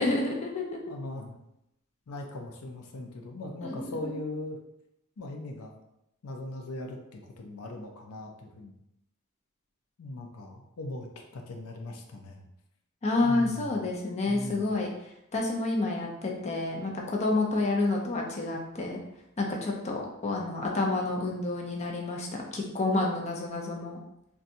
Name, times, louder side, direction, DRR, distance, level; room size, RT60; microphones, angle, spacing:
voice 1, 0.0-0.9 3.6-4.2 13.0-14.9 15.3-19.0 19.4-24.0, left 2 dB, 30° left, -1 dB, 0.5 m, -29 dB
voice 2, 0.9-1.4 2.1-4.6 5.2-5.8 6.2-8.8 10.0-11.1 11.3-12.4 13.2-13.8 14.3-14.7, left 2 dB, 85° left, 2 dB, 0.5 m, -39 dB
4.0 x 2.3 x 2.6 m, 0.82 s
head